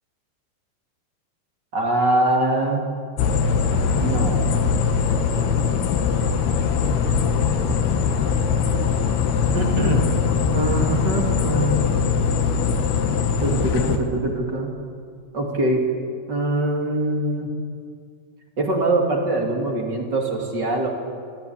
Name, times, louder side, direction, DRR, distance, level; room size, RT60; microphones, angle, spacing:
voice 1, 1.7-2.9 4.0-4.4 9.5-10.0 10.5-11.9 13.4-14.7 15.3-15.8 16.3-17.5 18.6-20.9, right 2 dB, 30° right, 1 dB, 2.5 m, -23 dB
sound 1, 3.2-14.0, left 6 dB, 80° left, 3.4 m, -21 dB
25.0 x 14.5 x 8.7 m, 2.2 s
omnidirectional pair, 4.6 m